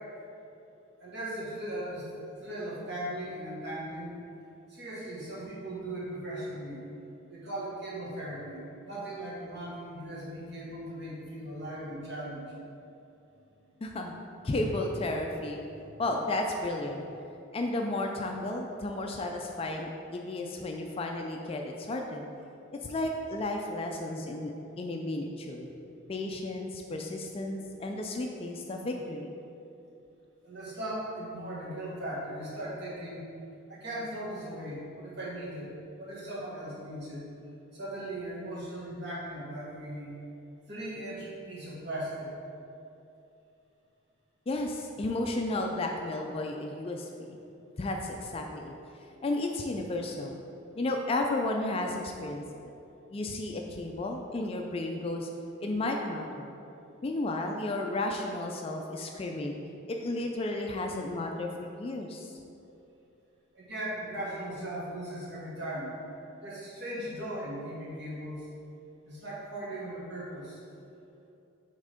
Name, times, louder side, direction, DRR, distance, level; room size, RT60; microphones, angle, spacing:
voice 1, 1.0-2.1 2.4-4.1 4.7-6.8 7.3-12.6 13.3-13.4 15.7-15.8 30.4-33.3 33.7-35.7 36.0-37.3 37.7-40.2 40.7-42.3 63.5-65.9 66.4-68.5 69.0-70.6, right 1 dB, 50° right, -6 dB, 1.5 m, -38 dB
voice 2, 13.8-14.1 14.4-15.6 16.0-17.1 17.5-22.2 22.8-25.7 26.1-29.3 44.5-47.4 47.8-48.7 49.2-50.4 50.8-52.7 53.1-55.3 55.6-56.5 57.0-59.5 59.9-62.3, left 2 dB, 25° left, 2 dB, 0.3 m, -33 dB
5.5 x 3.6 x 5.0 m, 2.8 s
head